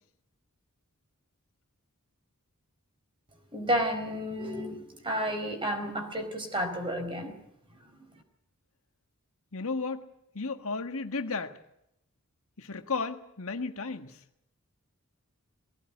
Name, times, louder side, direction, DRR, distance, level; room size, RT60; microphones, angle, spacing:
voice 1, 3.5-7.4, equal, 25° right, 5 dB, 4.5 m, -31 dB
voice 2, 9.5-10.1 10.3-11.6 12.6-14.2, left 4 dB, 65° left, 7 dB, 1.6 m, -34 dB
20.5 x 17.0 x 9.6 m, 0.79 s
head